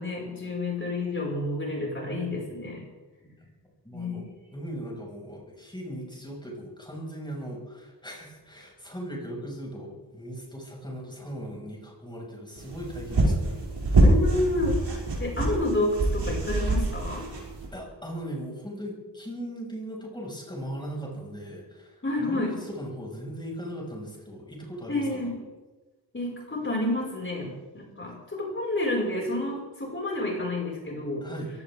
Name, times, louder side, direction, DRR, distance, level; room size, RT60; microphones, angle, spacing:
voice 1, 0.0-2.8 3.9-4.2 14.0-14.9 15.2-17.3 22.0-22.5 24.9-25.3 26.1-31.3, left 1 dB, 30° left, -2 dB, 5.8 m, -29 dB
voice 2, 3.8-14.0 17.7-25.3 28.0-28.1 31.2-31.5, equal, 10° left, -3 dB, 6.2 m, -39 dB
sound 1, 12.6-17.7, right 2 dB, 85° right, 6.3 m, -25 dB
23.0 x 17.0 x 3.7 m, 1.2 s
wide cardioid pair, 125°, 40 cm